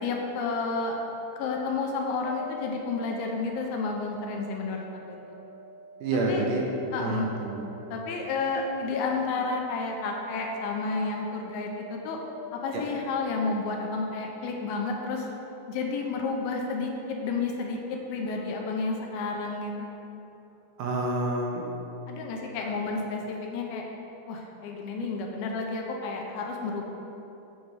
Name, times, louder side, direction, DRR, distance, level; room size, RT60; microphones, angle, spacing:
voice 1, 0.0-1.0 1.4-5.4 6.1-6.4 6.9-7.3 7.9-12.2 12.5-15.3 15.7-19.9 22.1-23.8 24.3-26.8, left 4 dB, 80° left, 1 dB, 2.5 m, -31 dB
sound 1, 2.2-12.2, right 1 dB, 55° left, 2.4 m, -48 dB
voice 2, 6.0-6.7 7.0-7.6 12.7-12.8 20.8-21.7, right 2 dB, 75° right, -1 dB, 2.0 m, -28 dB
7.6 x 5.2 x 4.7 m, 3.0 s
omnidirectional pair, 4.5 m